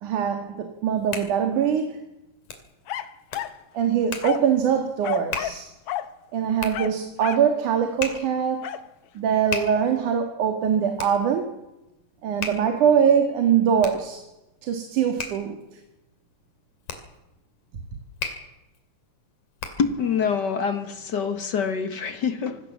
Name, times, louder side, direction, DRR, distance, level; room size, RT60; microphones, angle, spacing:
voice 1, 0.0-2.0 3.7-5.7 6.3-8.7 9.1-11.6 12.2-14.2 14.6-15.6, right 8 dB, 90° right, 3.4 m, -23 dB
Hands, 0.7-20.0, left 5 dB, 90° left, 4.0 m, -39 dB
sound 1, 2.9-3.6 4.2-4.6 5.0-5.6 5.9-6.1 6.7-7.5 8.6-8.9, left 12 dB, 65° left, 1.6 m, -32 dB
voice 2, 19.8-22.6, left 6 dB, 45° left, 1.5 m, -26 dB
25.0 x 18.0 x 7.2 m
omnidirectional pair, 3.4 m